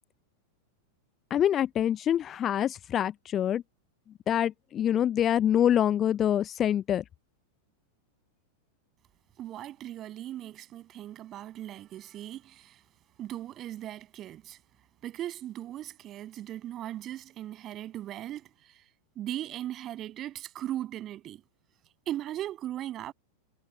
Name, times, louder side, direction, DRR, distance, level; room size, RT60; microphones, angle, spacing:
voice 1, 1.3-3.6 4.3-7.0, left 10 dB, 25° left, 0.6 m, -25 dB
voice 2, 9.4-12.8 13.2-14.6 15.0-18.8 19.2-21.4 22.1-23.1, right 12 dB, 30° right, 7.2 m, -38 dB
figure-of-eight pair, 90°, 0 cm